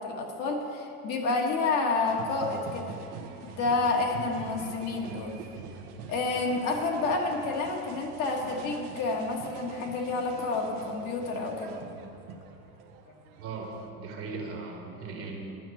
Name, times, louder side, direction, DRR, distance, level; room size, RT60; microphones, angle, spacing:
voice 1, 0.0-3.0 3.4-5.3 6.1-11.8 13.1-13.2, left 3 dB, 45° left, 1 dB, 1.5 m, -29 dB
sound 1, 2.1-13.9, right 5 dB, 80° right, 1.2 m, -44 dB
voice 2, 13.4-15.4, right 4 dB, 30° right, 1 dB, 1.4 m, -38 dB
10.5 x 5.9 x 7.7 m, 2.7 s
supercardioid pair, 150°, 44 cm